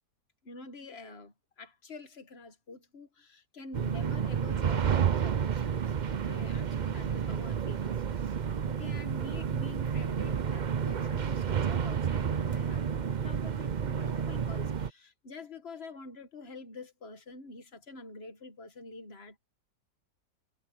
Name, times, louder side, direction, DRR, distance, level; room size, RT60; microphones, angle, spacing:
voice 1, 0.4-19.4, left 3 dB, 40° left, 1.9 m, -47 dB
sound 1, 3.7-14.9, right 7 dB, 80° right, 0.4 m, -30 dB
omnidirectional pair, 1.8 m